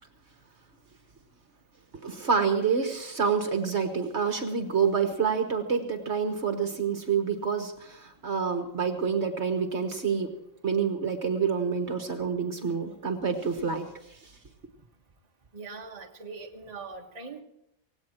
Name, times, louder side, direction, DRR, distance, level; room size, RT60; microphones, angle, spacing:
voice 1, 2.0-10.3 10.6-13.9, right 6 dB, 55° right, 6 dB, 1.6 m, -27 dB
voice 2, 15.5-17.4, right 4 dB, 30° right, 1 dB, 1.5 m, -41 dB
18.0 x 17.0 x 4.4 m, 0.80 s
omnidirectional pair, 1.4 m